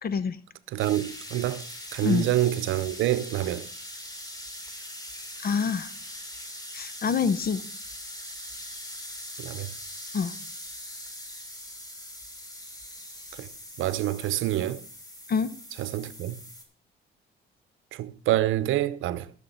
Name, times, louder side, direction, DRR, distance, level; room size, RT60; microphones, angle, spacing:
voice 1, 0.0-0.4 2.0-2.3 5.4-5.9 6.7-7.7 10.1-10.4 15.3-15.5, left 6 dB, 50° left, 1.0 m, -26 dB
voice 2, 0.7-1.7 1.9-3.7 9.4-9.7 13.3-13.5 13.8-14.8 15.8-16.4 17.9-19.3, right 14 dB, 85° right, 0.7 m, -27 dB
sound 1, 0.8-16.6, left 1 dB, 20° left, 2.6 m, -41 dB
12.0 x 6.9 x 5.6 m
cardioid pair, 90°, 20 cm